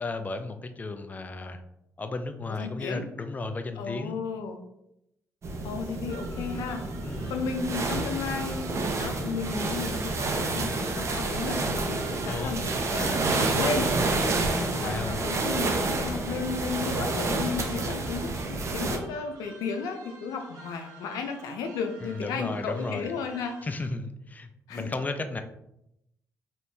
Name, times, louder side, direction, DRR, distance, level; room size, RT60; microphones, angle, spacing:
voice 1, 0.0-1.6 2.0-4.2 7.0-7.3 12.3-12.7 14.8-15.2 22.0-23.1 23.6-25.4, left 3 dB, 25° left, 7 dB, 0.4 m, -34 dB
voice 2, 2.5-3.0 3.8-4.6 5.6-6.8 7.3-8.7 9.0-13.9 14.6-23.6 24.7-24.9, left 5 dB, 85° left, 5 dB, 0.5 m, -34 dB
sound 1, 5.4-19.0, right 3 dB, 50° right, 0.7 m, -29 dB
sound 2, 6.1-23.9, right 3 dB, 80° right, 1.0 m, -51 dB
4.3 x 3.2 x 2.7 m, 0.83 s
supercardioid pair, 65°, 6 cm